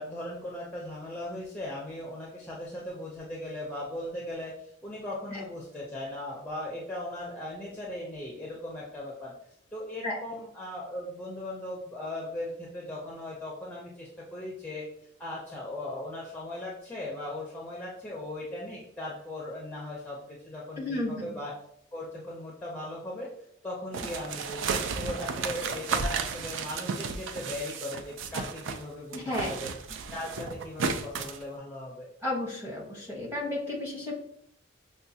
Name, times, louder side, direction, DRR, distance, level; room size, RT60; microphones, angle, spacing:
voice 1, 0.0-9.3 9.7-14.9 15.2-21.5 21.9-23.3 23.6-29.7 30.1-32.1, left 1 dB, 10° left, -4 dB, 0.5 m, -38 dB
voice 2, 20.8-21.3 29.1-29.5 32.2-34.2, left 1 dB, 15° right, -4 dB, 1.0 m, -33 dB
sound 1, 23.9-28.8 29.1-31.4, right 5 dB, 70° right, 0.3 m, -33 dB
5.6 x 2.2 x 2.7 m, 0.72 s
head